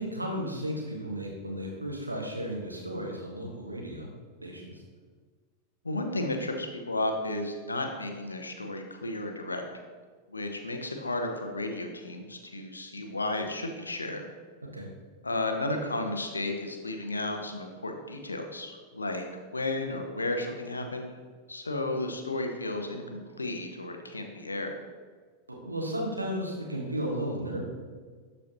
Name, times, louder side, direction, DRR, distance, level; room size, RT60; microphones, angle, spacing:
voice 1, 0.0-4.1 4.4-4.8 14.7-14.9 25.5-27.7, equal, 85° right, -1 dB, 1.4 m, -34 dB
voice 2, 5.8-9.6 10.3-14.2 15.2-19.3 19.5-21.2 21.5-24.7, left 2 dB, 80° left, 5 dB, 0.7 m, -33 dB
12.0 x 4.3 x 2.9 m, 1.5 s
figure-of-eight pair, 90°, 0 cm